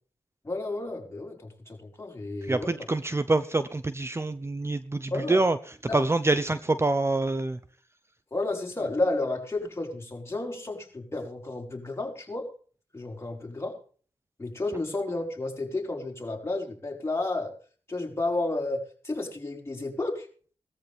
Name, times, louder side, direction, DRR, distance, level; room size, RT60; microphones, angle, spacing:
voice 1, 0.4-2.7 5.1-5.4 5.9-6.0 8.3-12.5 12.9-13.8 14.4-17.5 17.9-20.3, left 2 dB, 25° left, 0 dB, 5.0 m, -32 dB
voice 2, 2.4-7.6, right 2 dB, 25° right, 12 dB, 0.8 m, -26 dB
18.0 x 14.0 x 3.5 m, 0.41 s
cardioid pair, 75°, 11 cm